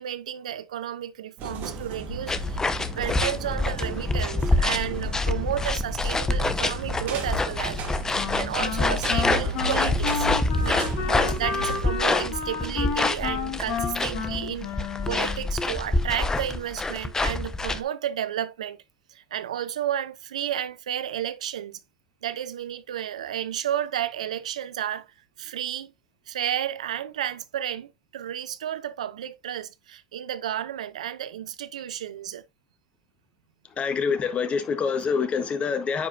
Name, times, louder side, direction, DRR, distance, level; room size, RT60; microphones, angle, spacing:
voice 1, 0.0-7.9 8.4-10.3 10.6-14.7 15.1-18.8 19.1-21.8 22.2-25.1 25.4-25.9 26.3-32.4, right 10 dB, 85° right, 0.6 m, -32 dB
sound 1, 1.4-11.8, right 2 dB, 55° right, 2.4 m, -35 dB
sound 2, 2.3-17.8, left 2 dB, 15° left, 1.0 m, -27 dB
Wind instrument woodwind instrument, 8.2-15.6, left 6 dB, 55° left, 2.4 m, -32 dB
voice 2, 33.8-36.1, left 5 dB, 35° left, 1.5 m, -26 dB
9.6 x 4.9 x 2.6 m
hypercardioid pair, 85°, 4 cm